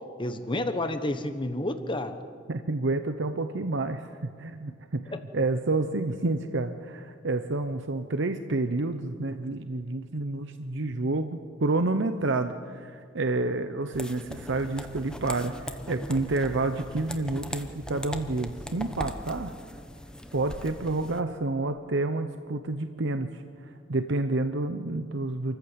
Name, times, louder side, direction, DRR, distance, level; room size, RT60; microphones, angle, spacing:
voice 1, 0.2-2.1 5.1-5.2, left 1 dB, 25° left, 8 dB, 1.2 m, -30 dB
voice 2, 2.5-4.1 4.4-19.5 20.3-25.6, right 2 dB, 65° right, 8 dB, 0.9 m, -29 dB
sound 1, 13.9-21.2, left 1 dB, 5° left, 1.1 m, -40 dB
27.5 x 14.5 x 8.1 m, 2.1 s
head